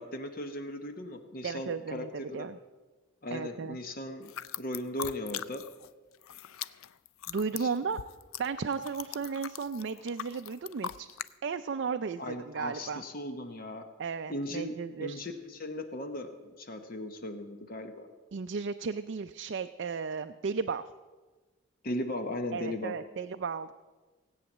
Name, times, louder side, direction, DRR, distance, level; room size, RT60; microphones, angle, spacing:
voice 1, 0.0-2.5 3.2-5.6 7.5-7.7 12.2-13.9 14.3-18.1 21.8-23.0, left 1 dB, 40° left, 7 dB, 0.9 m, -37 dB
voice 2, 1.4-2.6 3.3-3.8 7.3-8.0 8.4-11.1 11.4-13.0 14.0-15.2 18.3-20.8 22.5-23.7, right 5 dB, 55° right, 8 dB, 0.4 m, -34 dB
sound 1, 4.2-5.9 6.1-11.3, left 10 dB, 70° left, 0.4 m, -41 dB
17.0 x 8.8 x 7.2 m, 1.3 s
head